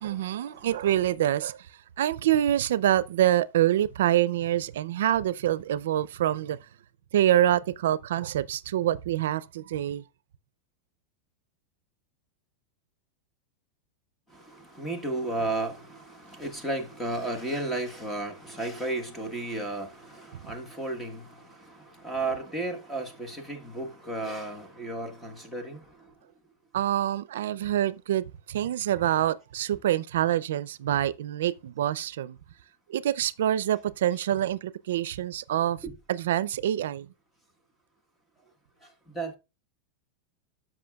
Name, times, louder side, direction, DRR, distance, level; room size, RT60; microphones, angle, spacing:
voice 1, 0.0-1.7 2.0-6.6 7.1-10.0 20.4-20.5 26.7-32.4 32.9-35.8 36.1-37.1, right 12 dB, 85° right, 0.4 m, -26 dB
voice 2, 14.8-16.0 16.2-21.2 22.0-25.8 35.8-35.9 39.1-39.4, right 2 dB, 5° left, 1.2 m, -33 dB
13.0 x 5.9 x 2.3 m
supercardioid pair, 165°, 0 cm